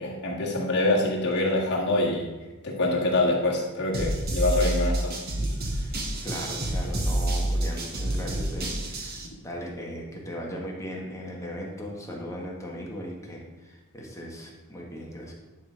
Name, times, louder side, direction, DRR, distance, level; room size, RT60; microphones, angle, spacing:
voice 1, 0.0-2.3 2.6-5.1, left 2 dB, 55° left, -4 dB, 1.7 m, -25 dB
sound 1, 3.9-9.3, right 1 dB, 45° right, 1.2 m, -28 dB
voice 2, 5.6-15.3, equal, 15° left, -1 dB, 1.3 m, -38 dB
10.5 x 3.8 x 5.0 m, 1.2 s
head